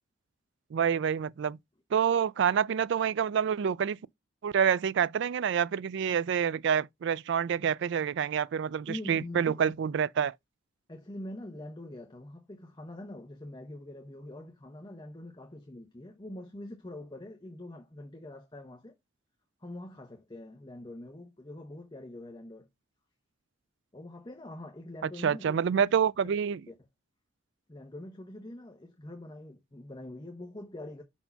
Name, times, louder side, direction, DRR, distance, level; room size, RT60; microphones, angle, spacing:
voice 1, 0.7-1.6 1.9-4.0 4.4-10.3 25.2-26.6, right 7 dB, 65° right, 0.3 m, -27 dB
voice 2, 8.9-9.7 10.9-18.9 19.6-22.7 23.9-25.8 26.7-26.8 27.7-31.0, left 1 dB, 20° left, 1.0 m, -44 dB
5.6 x 4.4 x 5.7 m
head